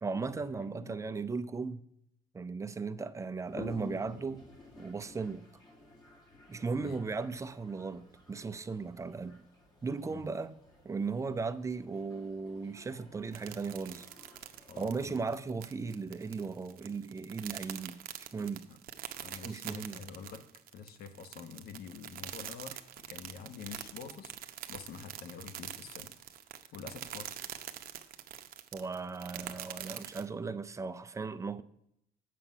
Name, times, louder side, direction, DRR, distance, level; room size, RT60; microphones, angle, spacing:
voice 1, 0.0-1.8 2.3-4.4 4.8-5.5 6.5-9.4 9.8-10.6 10.8-14.1 14.8-18.0 18.3-18.7 19.4-20.1 28.7-31.6, right 4 dB, 20° right, 0.5 m, -37 dB
Toilet flush, 3.4-14.9, left 2 dB, 25° left, 2.3 m, -52 dB
sound 1, 13.3-30.2, right 11 dB, 60° right, 0.7 m, -44 dB
voice 2, 14.7-15.2 18.7-18.8 19.2-20.5 20.7-26.4 26.7-27.4 29.4-29.6, left 6 dB, 65° left, 1.1 m, -47 dB
7.7 x 6.7 x 5.6 m
cardioid pair, 110°, 17 cm